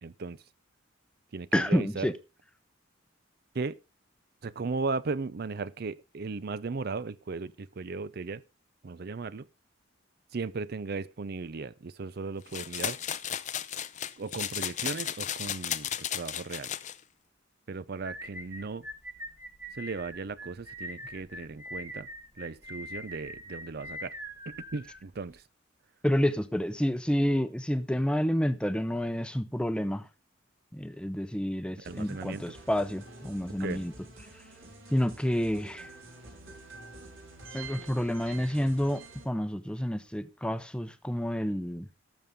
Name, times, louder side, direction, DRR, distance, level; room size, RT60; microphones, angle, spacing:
voice 1, 0.0-0.4 1.3-2.1 3.5-3.8 4.4-8.4 8.8-9.5 10.3-13.0 14.2-16.7 17.7-18.9 19.7-22.1 22.4-24.1 24.5-25.4 31.8-32.5 33.6-33.8, right 4 dB, 50° right, 0.5 m, -36 dB
voice 2, 1.5-2.1 26.0-30.1 30.7-33.9 34.9-35.9 37.5-41.9, equal, 5° left, 0.7 m, -29 dB
sound 1, 12.5-17.0, left 10 dB, 40° left, 0.6 m, -34 dB
sound 2, 18.0-25.4, equal, 10° right, 1.2 m, -43 dB
sound 3, 31.9-39.2, right 3 dB, 80° right, 4.7 m, -48 dB
18.5 x 6.9 x 3.6 m
head